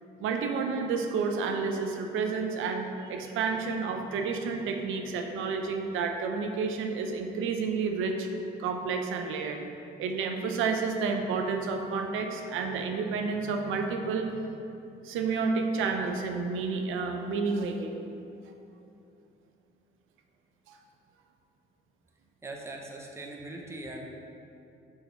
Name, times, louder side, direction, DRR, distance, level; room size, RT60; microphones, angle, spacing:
voice 1, 0.2-8.3 8.6-9.6 10.0-14.3 15.0-18.0 20.7-20.8, right 4 dB, 85° right, 4 dB, 0.6 m, -30 dB
voice 2, 22.4-24.0, right 2 dB, 15° right, 0 dB, 0.7 m, -41 dB
4.7 x 4.2 x 5.1 m, 2.7 s
cardioid pair, 90°, 20 cm